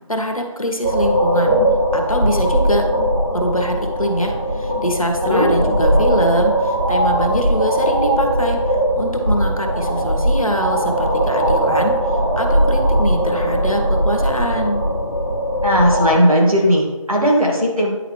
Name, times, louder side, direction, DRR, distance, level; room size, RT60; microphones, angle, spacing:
voice 1, 0.1-1.6 1.9-2.8 3.3-8.6 8.9-14.8, equal, 80° left, 3 dB, 1.3 m, -23 dB
sound 1, 0.8-16.1, right 1 dB, 35° right, 2.2 m, -19 dB
voice 2, 15.6-17.9, equal, 90° right, -2 dB, 2.1 m, -16 dB
9.7 x 4.2 x 3.2 m, 1.2 s
figure-of-eight pair, 180°, 18 cm